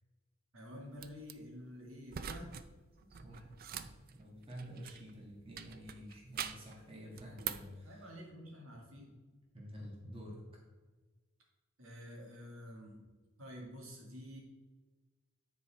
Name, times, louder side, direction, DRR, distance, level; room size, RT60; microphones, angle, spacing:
voice 1, 0.5-2.6 7.8-9.2 11.8-13.0 13.4-14.4, equal, 85° right, -2 dB, 2.1 m, -49 dB
sound 1, 1.0-1.3 2.1-2.7 3.0-5.1 5.6-6.7 7.2-7.8, right 8 dB, 45° right, 0.4 m, -43 dB
voice 2, 3.2-8.1 9.5-10.4, equal, 25° right, -2 dB, 1.7 m, -50 dB
9.7 x 4.7 x 4.3 m, 1.3 s
head